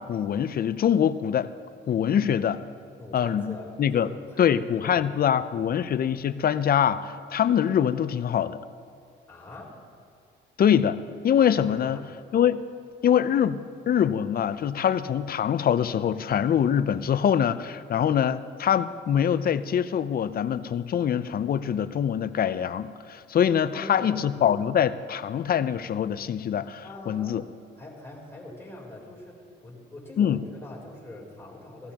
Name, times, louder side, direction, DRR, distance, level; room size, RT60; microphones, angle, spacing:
voice 1, 0.0-1.5 1.9-2.6 3.1-4.1 4.4-8.6 10.6-12.0 12.3-12.6 13.0-13.6 13.9-27.4 30.2-30.4, left 9 dB, 50° left, 14 dB, 0.5 m, -24 dB
voice 2, 3.0-5.8 9.3-9.8 11.7-12.0 23.7-24.3 26.8-27.5 27.8-31.9, left 2 dB, 10° left, -3 dB, 3.7 m, -43 dB
17.0 x 15.5 x 2.9 m, 2.5 s
cardioid pair, 90°, 20 cm